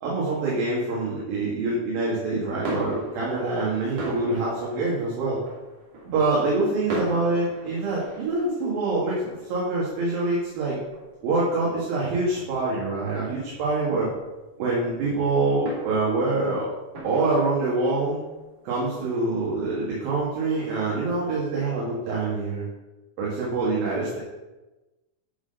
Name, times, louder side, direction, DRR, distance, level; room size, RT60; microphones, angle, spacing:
voice 1, 0.0-5.4 6.0-9.2 9.5-10.8 11.2-14.1 14.6-16.7 17.0-18.2 18.7-22.7 23.2-24.2, right 3 dB, 80° right, -6 dB, 3.6 m, -25 dB
sound 1, 2.2-21.3, right 2 dB, 60° right, 3.9 m, -41 dB
11.0 x 4.0 x 6.6 m, 1.1 s
omnidirectional pair, 4.0 m